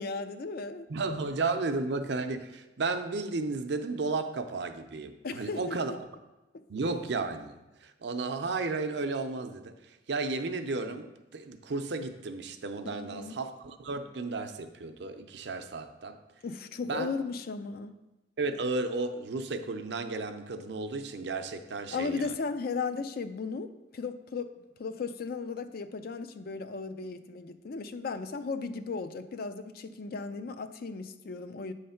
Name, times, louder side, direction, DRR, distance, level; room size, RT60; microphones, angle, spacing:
voice 1, 0.0-0.9 5.2-5.8 12.8-13.4 16.4-18.0 21.9-24.5 24.8-31.7, left 4 dB, 55° left, 10 dB, 0.4 m, -36 dB
voice 2, 0.9-5.9 6.7-9.7 10.1-16.2 16.9-17.1 18.4-22.2, right 3 dB, 65° right, 7 dB, 0.6 m, -33 dB
8.5 x 3.2 x 5.6 m, 1.0 s
head